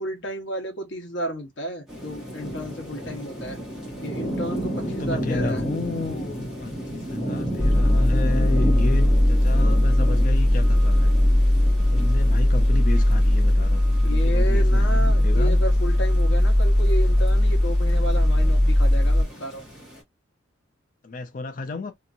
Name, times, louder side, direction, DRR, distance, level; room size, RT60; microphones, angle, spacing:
voice 1, 0.0-3.6 4.0-5.6 14.0-19.6, right 1 dB, 65° left, 0.9 m, -32 dB
sound 1, 1.9-20.0, right 1 dB, 5° right, 1.2 m, -34 dB
voice 2, 4.7-11.1 11.9-14.9 15.2-15.6 21.0-21.9, left 3 dB, 40° left, 0.4 m, -32 dB
sound 2, 7.6-19.2, left 1 dB, 20° right, 1.4 m, -19 dB
2.9 x 2.5 x 2.5 m
head